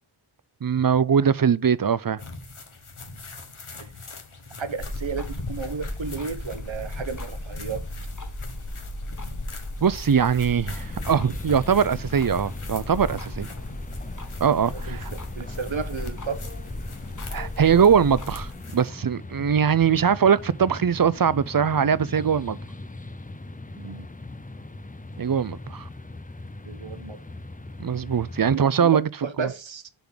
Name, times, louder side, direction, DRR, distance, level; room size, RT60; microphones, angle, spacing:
voice 1, 0.6-2.2 9.8-13.5 14.4-15.1 17.3-22.6 25.2-25.9 27.8-29.1 29.4-29.5, right 7 dB, 45° right, 0.5 m, -21 dB
sound 1, 2.2-18.9, left 4 dB, 90° left, 1.5 m, -44 dB
voice 2, 3.8-4.1 4.6-7.8 14.5-14.6 14.9-15.0 15.3-16.5 23.8-24.1 26.6-27.2 28.5-29.9, right 5 dB, 70° right, 1.0 m, -33 dB
sound 2, 4.8-18.5, left 1 dB, 40° left, 1.3 m, -36 dB
sound 3, 10.7-28.6, left 2 dB, 15° left, 0.6 m, -40 dB
6.9 x 3.8 x 6.1 m
wide cardioid pair, 40°, 48 cm